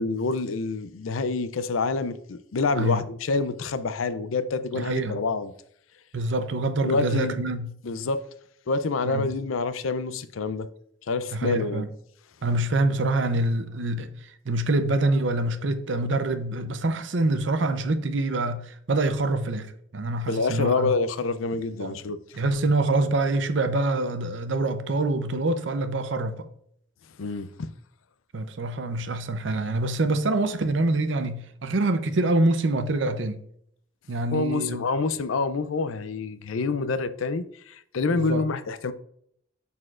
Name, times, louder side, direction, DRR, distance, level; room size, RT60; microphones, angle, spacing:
voice 1, 0.0-5.5 6.8-7.4 7.8-8.2 8.7-10.7 11.1-11.9 20.3-22.4 27.2-27.7 34.3-38.9, left 3 dB, 90° left, 0.5 m, -27 dB
voice 2, 4.8-5.2 6.1-7.7 9.0-9.3 11.3-11.9 12.4-14.1 14.5-19.7 19.9-20.9 21.8-21.9 22.4-26.4 28.3-33.4 34.1-34.8 38.1-38.4, right 2 dB, 65° right, 0.6 m, -25 dB
11.0 x 4.2 x 2.5 m
head